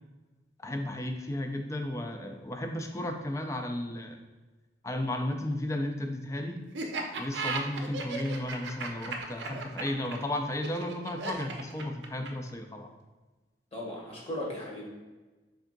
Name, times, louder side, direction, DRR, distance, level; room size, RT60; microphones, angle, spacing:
voice 1, 0.6-4.2 4.8-6.6 7.2-12.9, left 1 dB, 15° left, 4 dB, 0.3 m, -34 dB
Laughter, 6.7-12.5, right 4 dB, 80° right, 0.6 m, -36 dB
voice 2, 13.7-14.9, left 1 dB, 35° left, -4 dB, 1.1 m, -37 dB
3.5 x 3.5 x 3.8 m, 1.2 s
head